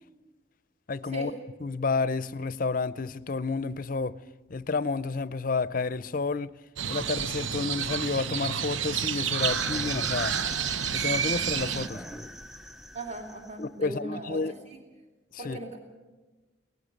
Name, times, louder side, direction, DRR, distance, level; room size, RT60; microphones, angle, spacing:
voice 1, 0.9-1.3 1.6-4.2 4.5-6.5 6.9-10.4 10.9-12.0 13.6-14.5 15.4-15.6, left 4 dB, 45° left, 0.5 m, -30 dB
Crow, 6.8-11.9, right 8 dB, 80° right, 0.7 m, -30 dB
sound 1, 9.4-13.6, equal, ahead, 0.6 m, -41 dB
voice 2, 12.9-14.8 15.4-15.8, right 2 dB, 35° right, 2.5 m, -38 dB
18.5 x 14.5 x 9.9 m
head